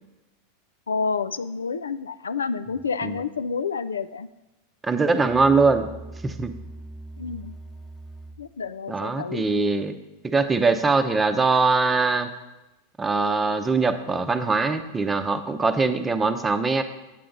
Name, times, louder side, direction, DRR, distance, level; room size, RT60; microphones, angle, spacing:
voice 1, 0.9-4.3 7.2-7.5 8.4-9.5, left 5 dB, 85° left, 14 dB, 0.3 m, -29 dB
voice 2, 4.8-5.9 6.2-6.5 8.9-10.0 10.2-12.3 13.0-16.8, right 4 dB, 15° right, 8 dB, 0.7 m, -22 dB
Musical instrument, 5.1-8.6, right 2 dB, 15° left, 1.0 m, -41 dB
8.4 x 7.8 x 3.9 m, 1.0 s
hypercardioid pair, 95°, 0 cm